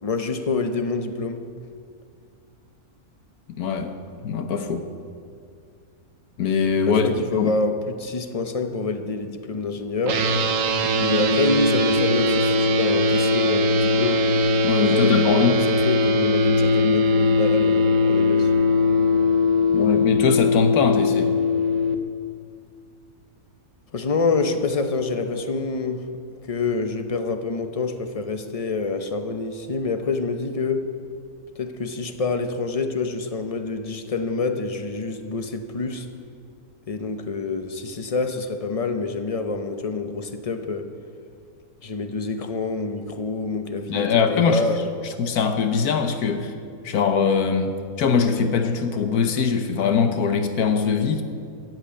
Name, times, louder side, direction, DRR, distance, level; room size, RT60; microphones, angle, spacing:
voice 1, 0.0-1.5 6.9-10.2 10.8-14.2 14.8-18.5 23.9-26.0 26.3-30.9 31.6-36.1 36.9-40.9 41.8-44.9, left 3 dB, 30° left, 8 dB, 0.7 m, -27 dB
voice 2, 3.5-4.0 4.2-4.9 6.4-7.1 7.4-7.5 14.6-15.7 19.7-21.3 43.9-44.6 45.2-46.5 46.8-51.2, left 6 dB, 75° left, 7 dB, 1.4 m, -22 dB
sound 1, 10.1-21.9, left 2 dB, 60° right, 1.2 m, -20 dB
13.5 x 7.7 x 8.9 m, 2.3 s
omnidirectional pair, 1.6 m